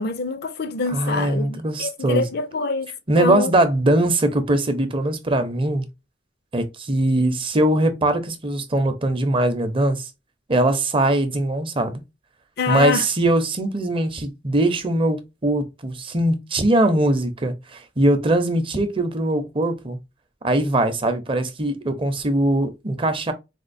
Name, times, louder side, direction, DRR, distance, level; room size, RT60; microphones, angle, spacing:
voice 1, 0.0-2.9 3.2-3.5 12.6-13.1, left 4 dB, 60° left, 0.5 m, -25 dB
voice 2, 0.9-2.3 3.1-5.9 6.5-10.1 10.5-12.0 12.7-20.0 20.4-23.3, right 1 dB, 30° right, 0.6 m, -21 dB
4.3 x 2.4 x 2.5 m
head